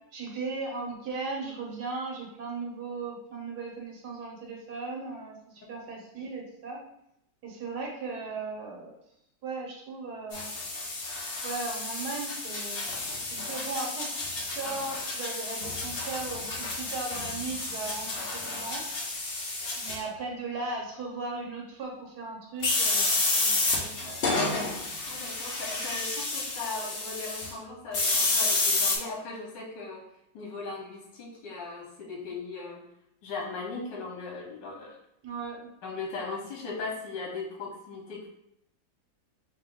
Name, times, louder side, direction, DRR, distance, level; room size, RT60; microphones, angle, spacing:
voice 1, 0.1-6.8 7.4-8.9 9.4-10.5 11.4-12.8 13.3-18.8 19.7-23.1 23.4-24.7 35.2-35.7, right 3 dB, 65° right, -1 dB, 1.4 m, -37 dB
sound 1, 10.3-20.0 22.6-27.5 27.9-29.0, left 3 dB, 60° left, 0.6 m, -30 dB
voice 2, 25.1-30.0 30.3-32.9 33.2-35.0 35.8-38.3, left 3 dB, 80° left, 0 dB, 1.6 m, -38 dB
3.6 x 3.0 x 3.5 m, 0.78 s
omnidirectional pair, 1.9 m